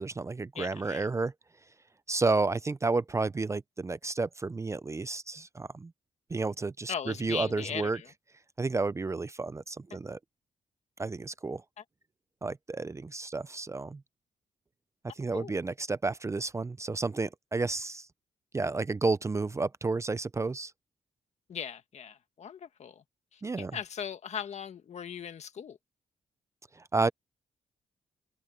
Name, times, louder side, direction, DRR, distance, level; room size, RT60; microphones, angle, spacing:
voice 1, 0.0-1.3 2.1-5.9 6.3-8.0 8.6-10.2 11.0-11.6 12.4-14.0 15.2-18.1 18.5-20.7 23.4-23.8 26.8-27.1, right 3 dB, 20° right, 0.5 m, -31 dB
voice 2, 0.5-1.1 6.9-8.1 11.8-11.9 15.3-15.5 21.5-23.0 23.3-25.8, left 8 dB, 60° left, 1.7 m, -39 dB
cardioid pair, 100°, 13 cm